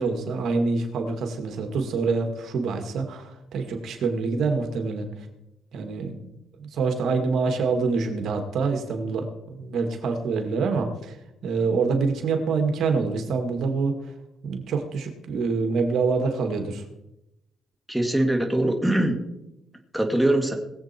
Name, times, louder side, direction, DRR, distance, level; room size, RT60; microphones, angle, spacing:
voice 1, 0.0-5.1 5.7-6.3 6.6-11.2 11.4-14.0 14.4-16.8, right 4 dB, 70° right, 5 dB, 2.1 m, -26 dB
voice 2, 17.9-19.2 19.9-20.5, right 1 dB, ahead, 3 dB, 2.1 m, -22 dB
20.5 x 8.0 x 4.5 m, 0.89 s
cardioid pair, 90°, 0 cm